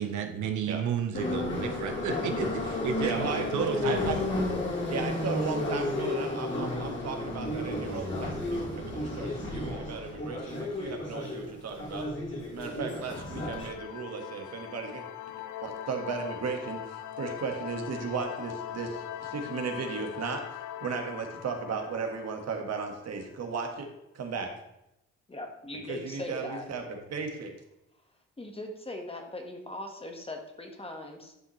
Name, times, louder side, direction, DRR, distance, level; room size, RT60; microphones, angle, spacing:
voice 1, 0.0-4.0, right 7 dB, 75° right, 5 dB, 0.8 m, -32 dB
Subway metro underground, 1.1-13.7, left 2 dB, 40° left, 2.6 m, -32 dB
voice 2, 3.0-4.2 4.9-12.0 12.5-15.0 15.6-23.9 24.1-24.5 25.9-27.5, right 5 dB, 60° right, 4 dB, 1.6 m, -35 dB
sound 1, 13.1-23.5, left 12 dB, 80° left, 0.6 m, -41 dB
voice 3, 25.3-26.7 28.4-31.3, left 2 dB, 20° left, 3 dB, 1.5 m, -40 dB
11.0 x 5.9 x 3.2 m, 0.87 s
cardioid pair, 90°, 30 cm